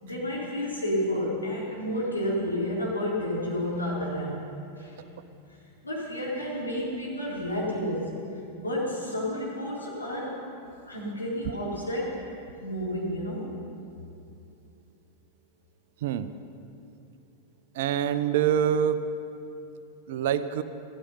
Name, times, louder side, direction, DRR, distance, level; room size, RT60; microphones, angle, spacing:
voice 1, 0.0-4.4 4.8-5.0 5.8-8.1 8.6-10.4 10.9-12.2 12.6-13.5, equal, 80° left, -6 dB, 3.9 m, -30 dB
voice 2, 17.7-19.0 20.1-20.6, right 9 dB, 55° right, 12 dB, 0.6 m, -25 dB
16.0 x 13.0 x 5.6 m, 2.7 s
figure-of-eight pair, 90°, 0 cm